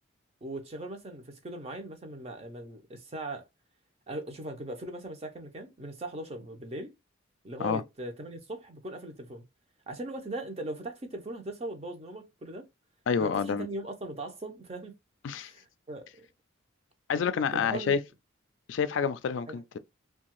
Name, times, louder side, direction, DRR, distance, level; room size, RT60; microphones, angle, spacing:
voice 1, 0.4-3.4 4.1-6.9 7.4-9.4 9.9-12.7 13.2-14.9 15.3-16.3 17.5-18.0 19.5-19.6, right 1 dB, 30° right, 0.6 m, -39 dB
voice 2, 13.1-13.7 15.2-15.5 17.1-18.0 18.7-19.8, left 6 dB, 65° left, 0.3 m, -28 dB
2.7 x 2.3 x 2.9 m
head